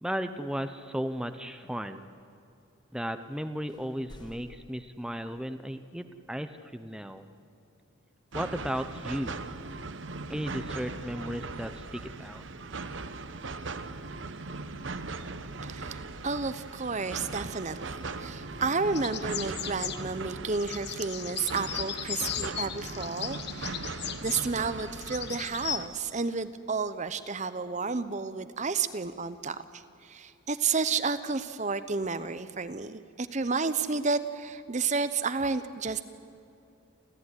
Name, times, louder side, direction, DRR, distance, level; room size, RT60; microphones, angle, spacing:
voice 1, 0.0-2.0 2.9-7.2 8.3-9.4 10.3-12.5, equal, 5° right, 8 dB, 0.7 m, -35 dB
sound 1, 3.7-5.7, equal, 20° left, 1.8 m, -53 dB
sound 2, 8.3-25.9, right 3 dB, 60° right, 1.0 m, -39 dB
voice 2, 15.6-23.9 24.2-36.0, right 4 dB, 35° right, 12 dB, 0.8 m, -31 dB
sound 3, 18.9-20.0 20.5-25.8, left 10 dB, 50° left, 1.1 m, -37 dB
28.5 x 14.0 x 9.8 m, 2.7 s
head